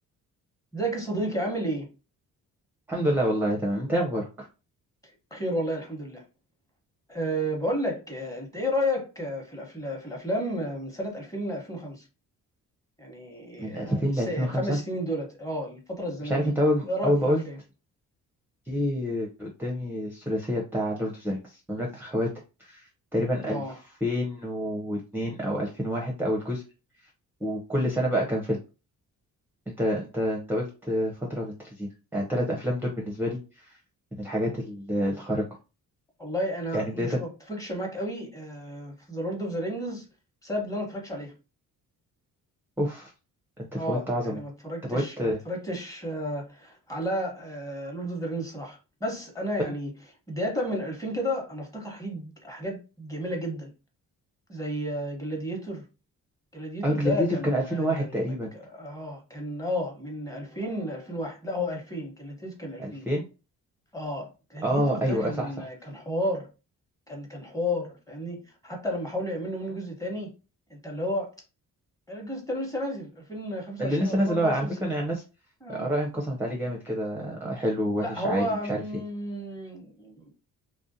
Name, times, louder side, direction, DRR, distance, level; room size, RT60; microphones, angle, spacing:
voice 1, 0.7-1.9 5.3-6.2 7.1-12.0 13.0-16.5 16.8-17.6 23.4-23.8 36.2-40.1 40.4-41.3 43.8-49.9 50.3-53.7 54.5-55.8 56.5-63.1 63.9-66.5 67.1-70.3 70.7-71.3 72.1-74.9 75.6-75.9 78.0-80.4, equal, 10° left, 1.1 m, -32 dB
voice 2, 2.9-4.5 13.6-14.8 16.3-17.4 18.7-22.3 22.6-22.8 23.1-26.6 27.4-28.6 29.7-33.8 34.2-35.4 36.7-37.2 42.8-43.1 43.6-44.4 44.9-45.4 49.6-49.7 56.8-58.5 62.8-63.2 64.6-65.5 73.8-75.2 75.7-79.0, equal, 5° right, 0.7 m, -28 dB
2.4 x 2.1 x 2.7 m
cardioid pair, 70°, 36 cm